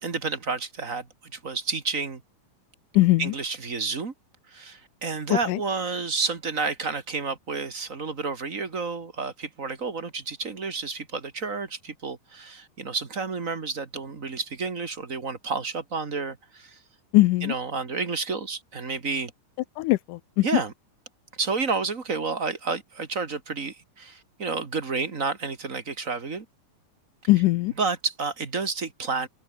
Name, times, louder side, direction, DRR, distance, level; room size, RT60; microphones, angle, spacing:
voice 1, 0.0-2.2 3.2-4.1 4.5-16.8 17.4-19.3 20.4-20.7 21.4-26.5 27.8-29.3, right 4 dB, 30° right, 1.7 m, -30 dB
voice 2, 3.0-3.3 5.3-5.6 17.1-17.5 19.8-20.4 27.3-27.7, left 18 dB, 80° left, 2.1 m, -20 dB
omnidirectional pair, 4.0 m